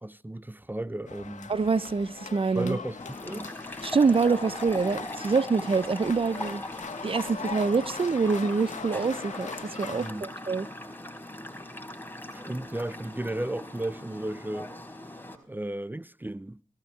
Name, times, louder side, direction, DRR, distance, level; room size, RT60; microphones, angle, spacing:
voice 1, 0.0-1.5 2.5-3.5 9.9-10.3 12.3-14.7 15.5-16.6, right 1 dB, 15° right, 0.7 m, -34 dB
sound 1, 1.1-10.1, left 5 dB, 75° left, 2.0 m, -40 dB
voice 2, 1.5-2.8 3.8-6.6 7.0-9.5 9.8-10.7, right 4 dB, 45° right, 0.8 m, -25 dB
sound 2, 3.0-15.4, left 1 dB, 15° left, 4.4 m, -40 dB
23.0 x 16.0 x 3.4 m
cardioid pair, 45°, 13 cm